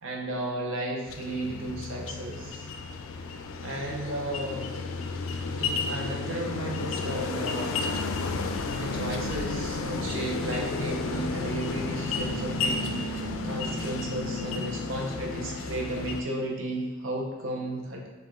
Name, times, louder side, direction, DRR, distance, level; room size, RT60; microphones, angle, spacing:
voice 1, 0.0-2.7 3.6-4.7 5.6-7.7 8.8-18.1, right 1 dB, 70° right, -1 dB, 0.8 m, -34 dB
sound 1, 1.1-16.2, left 3 dB, 80° left, 0.4 m, -32 dB
4.7 x 2.5 x 3.7 m, 1.3 s
head